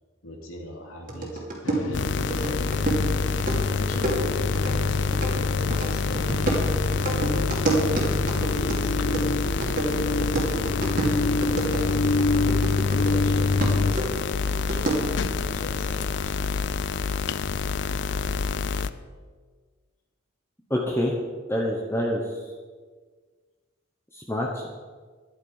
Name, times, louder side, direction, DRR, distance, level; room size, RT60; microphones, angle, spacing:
voice 1, 0.2-1.4 1.7-2.7 3.6-5.1 5.5-7.3 7.7-9.1 9.5-12.4 13.0-14.9 15.3-16.4, left 1 dB, 90° left, 0 dB, 2.5 m, -41 dB
sound 1, 1.1-13.3 13.6-15.2, right 2 dB, 40° right, 2.4 m, -29 dB
sound 2, 1.6-13.9, left 3 dB, 75° left, 0.8 m, -27 dB
sound 3, 1.9-18.9, left 5 dB, 60° left, 0.5 m, -28 dB
voice 2, 20.7-21.1 21.5-22.2 24.1-24.7, left 1 dB, 10° left, -1 dB, 1.1 m, -26 dB
12.0 x 10.5 x 5.6 m, 1.5 s
head